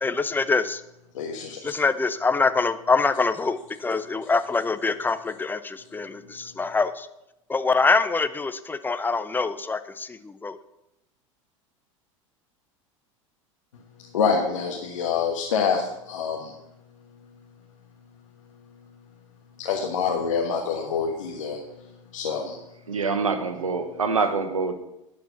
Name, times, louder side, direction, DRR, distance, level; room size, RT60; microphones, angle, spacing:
voice 1, 0.0-0.8 1.6-7.1 7.5-10.6, left 4 dB, 10° left, 12 dB, 0.6 m, -24 dB
voice 2, 1.1-1.6 14.1-16.5 19.6-21.6 22.1-22.6, left 6 dB, 75° left, -1 dB, 1.4 m, -26 dB
voice 3, 22.9-24.7, right 4 dB, 90° right, 9 dB, 1.1 m, -25 dB
11.5 x 4.8 x 7.1 m, 0.90 s
hypercardioid pair, 85°, 17 cm